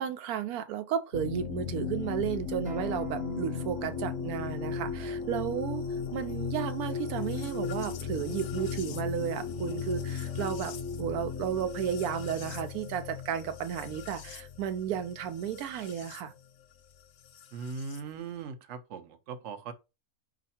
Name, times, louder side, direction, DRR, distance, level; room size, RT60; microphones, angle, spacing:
voice 1, 0.0-5.9 6.1-16.3, right 9 dB, 90° right, 1.1 m, -33 dB
sound 1, 1.1-16.2 17.4-18.0, left 6 dB, 65° left, 0.8 m, -36 dB
Acoustic guitar, 2.6-7.8, right 4 dB, 5° right, 0.8 m, -48 dB
voice 2, 17.5-19.7, right 5 dB, 60° right, 0.9 m, -39 dB
4.9 x 2.5 x 4.2 m
omnidirectional pair, 1.5 m